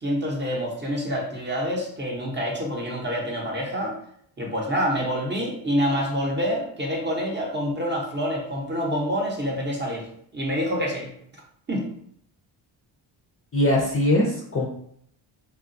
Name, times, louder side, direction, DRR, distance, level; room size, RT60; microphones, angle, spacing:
voice 1, 0.0-4.0 4.4-10.0 10.3-11.1 11.7-11.8, equal, 20° right, -2 dB, 0.7 m, -27 dB
voice 2, 13.5-14.7, left 1 dB, 30° left, -2 dB, 0.5 m, -21 dB
2.9 x 2.2 x 2.5 m, 0.67 s
cardioid pair, 85°, 50 cm